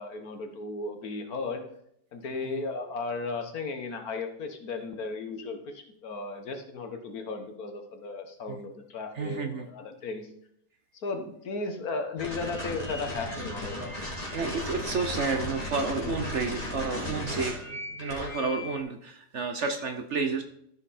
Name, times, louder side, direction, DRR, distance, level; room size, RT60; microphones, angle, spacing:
voice 1, 0.0-1.6 2.1-10.3 10.9-14.0 15.9-16.2, left 3 dB, 65° left, 5 dB, 1.6 m, -35 dB
voice 2, 9.1-9.7 14.3-20.4, right 4 dB, 55° right, 6 dB, 1.0 m, -31 dB
sound 1, 12.2-18.8, left 1 dB, 25° left, 2.5 m, -36 dB
13.0 x 5.6 x 4.2 m, 0.71 s
omnidirectional pair, 1.7 m